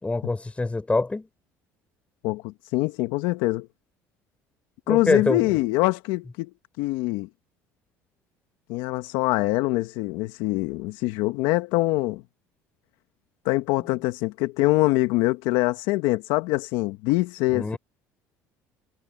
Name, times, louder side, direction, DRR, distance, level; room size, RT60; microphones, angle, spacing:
voice 1, 0.0-1.3 4.9-5.4 17.5-17.8, left 2 dB, 15° left, 5.3 m, -24 dB
voice 2, 2.2-3.7 4.9-6.5 6.8-7.3 8.7-12.2 13.4-17.8, left 20 dB, 75° left, 1.4 m, -24 dB
supercardioid pair, 80°, 8 cm